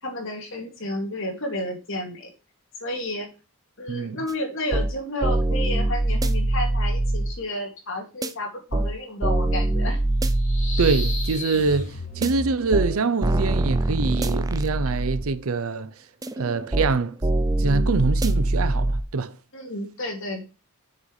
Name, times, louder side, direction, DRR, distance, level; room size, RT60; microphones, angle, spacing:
voice 1, 0.0-2.3 2.8-3.3 3.8-10.0 19.5-20.5, left 1 dB, 60° left, 2.5 m, -31 dB
voice 2, 3.9-4.2 10.8-15.9 16.4-17.2 17.6-19.4, right 4 dB, 75° right, 0.6 m, -24 dB
sound 1, 4.3-4.4 4.7-4.9 5.2-7.3 8.2-8.3 8.7-8.9 9.2-11.4 12.2-12.3 12.7-12.9 13.2-15.3 16.2-16.9 17.2-19.0, right 1 dB, 15° right, 0.5 m, -23 dB
sound 2, 10.3-13.1, left 1 dB, 35° left, 2.4 m, -34 dB
6.6 x 5.5 x 4.8 m
head